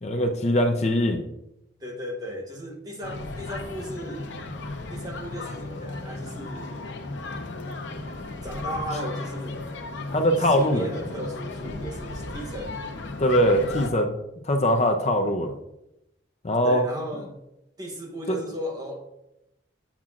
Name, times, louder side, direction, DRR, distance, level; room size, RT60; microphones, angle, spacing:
voice 1, 0.0-1.2 10.1-10.8 13.2-14.1 14.4-15.5 16.4-16.8 18.3-18.4, equal, 35° left, 4 dB, 0.5 m, -22 dB
voice 2, 1.8-4.4 4.9-6.8 8.4-9.7 10.4-12.9 16.6-17.4 17.8-19.0, equal, 20° right, 1 dB, 1.0 m, -36 dB
sound 1, 3.0-13.9, left 2 dB, 85° left, 0.8 m, -35 dB
7.3 x 7.3 x 2.5 m, 0.85 s
head